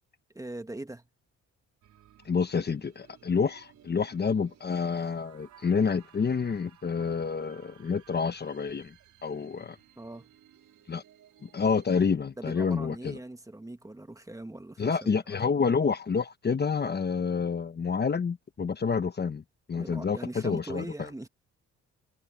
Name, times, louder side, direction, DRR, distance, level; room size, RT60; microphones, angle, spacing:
voice 1, 0.3-1.1 10.0-10.3 12.4-15.5 19.7-21.3, right 2 dB, 10° right, 1.8 m, -41 dB
sound 1, 1.8-12.1, right 10 dB, 70° right, 4.9 m, -58 dB
voice 2, 2.2-8.9 9.2-9.8 10.9-11.0 11.4-13.2 14.8-19.4 19.7-20.8, left 5 dB, 35° left, 1.2 m, -28 dB
cardioid pair, 90°, 30 cm